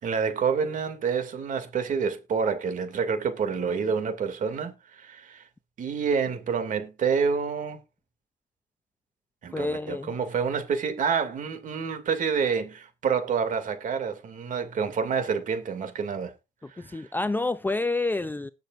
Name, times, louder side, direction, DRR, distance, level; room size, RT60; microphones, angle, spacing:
voice 1, 0.0-5.4 5.8-7.8 9.4-16.3 16.7-17.1, right 6 dB, 50° right, 2.7 m, -28 dB
voice 2, 9.5-10.1 16.6-18.5, left 2 dB, 10° left, 0.5 m, -28 dB
19.5 x 6.8 x 2.6 m
cardioid pair, 110°, 17 cm